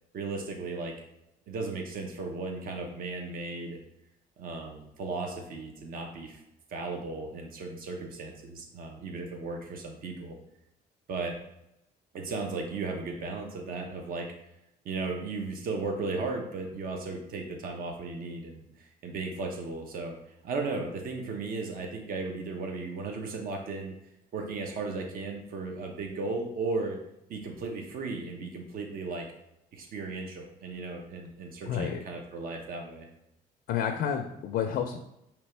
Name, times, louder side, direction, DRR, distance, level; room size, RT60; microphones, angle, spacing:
voice 1, 0.1-0.9 1.5-3.8 4.4-6.4 6.7-10.4 11.1-11.4 12.1-14.3 14.8-23.9 24.3-27.0 27.3-29.3 29.7-33.1, right 3 dB, 60° right, 3 dB, 0.9 m, -35 dB
voice 2, 31.7-32.0 33.7-35.0, left 8 dB, 65° left, 5 dB, 0.5 m, -30 dB
5.1 x 2.9 x 3.3 m, 0.83 s
cardioid pair, 110°, 17 cm